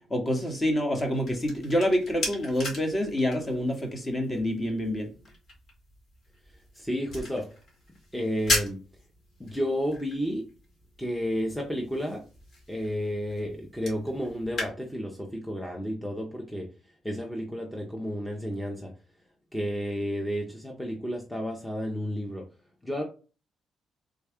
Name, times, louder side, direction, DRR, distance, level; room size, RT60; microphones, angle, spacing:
voice 1, 0.1-5.1, equal, 25° left, 4 dB, 1.0 m, -27 dB
sound 1, 0.9-14.7, left 2 dB, 60° left, 1.7 m, -38 dB
voice 2, 6.7-7.6 8.1-8.8 9.4-10.4 11.0-12.2 12.7-16.7 17.0-18.9 19.5-22.5 22.8-23.0, equal, 5° left, 0 dB, 0.7 m, -31 dB
3.6 x 2.2 x 3.4 m, 0.34 s
cardioid pair, 90°, 0 cm